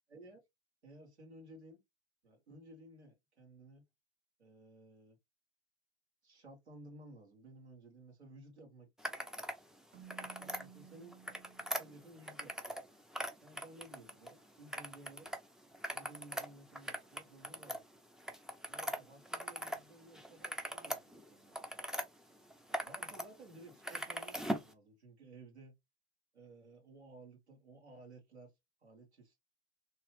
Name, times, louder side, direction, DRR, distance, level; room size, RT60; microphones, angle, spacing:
voice 1, 0.1-0.4 0.8-1.8 2.2-3.8 4.4-5.2 6.2-8.9 10.2-11.2 11.8-12.7 13.4-15.3 15.9-17.9 18.7-21.8 22.7-25.7 26.3-28.5 28.8-29.4, right 2 dB, 85° right, 1.6 m, -56 dB
sound 1, 9.0-9.6 10.0-10.6 11.1-12.9 13.1-14.3 14.7-15.4 15.7-19.8 20.1-22.1 22.5-23.3 23.5-24.7, equal, ahead, 0.5 m, -41 dB
Keyboard (musical), 9.9-12.7, right 9 dB, 35° right, 0.7 m, -57 dB
3.1 x 2.9 x 3.2 m
figure-of-eight pair, 80°, 32 cm